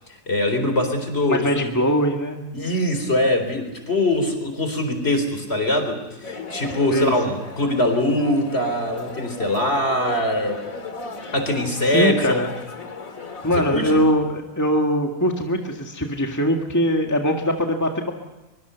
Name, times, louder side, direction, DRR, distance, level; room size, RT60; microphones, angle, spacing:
voice 1, 0.3-1.6 2.5-10.6 11.3-12.4 13.7-13.9, left 1 dB, 50° left, 7 dB, 4.2 m, -22 dB
voice 2, 1.3-2.7 6.9-7.3 11.9-12.5 13.4-18.1, equal, 15° left, 2 dB, 1.8 m, -22 dB
sound 1, 6.2-14.1, left 3 dB, 80° left, 2.4 m, -36 dB
23.5 x 23.5 x 6.9 m, 1.1 s
omnidirectional pair, 1.4 m